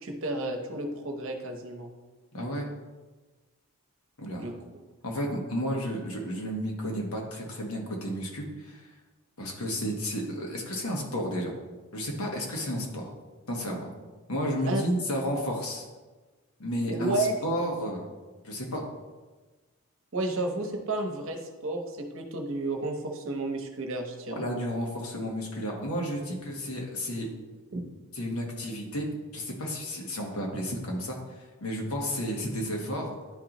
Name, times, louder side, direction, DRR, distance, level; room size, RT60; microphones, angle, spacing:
voice 1, 0.0-1.9 4.4-4.8 14.7-14.8 16.9-17.3 20.1-24.4 27.7-27.8, right 2 dB, 65° right, 3 dB, 0.9 m, -32 dB
voice 2, 2.3-2.7 4.2-4.5 5.0-8.8 9.4-11.5 11.9-13.1 13.5-13.9 14.3-15.9 16.6-18.1 18.4-18.9 24.3-27.3 28.1-31.2 31.6-33.1, equal, 80° left, 0 dB, 1.3 m, -32 dB
10.5 x 3.8 x 3.0 m, 1.3 s
head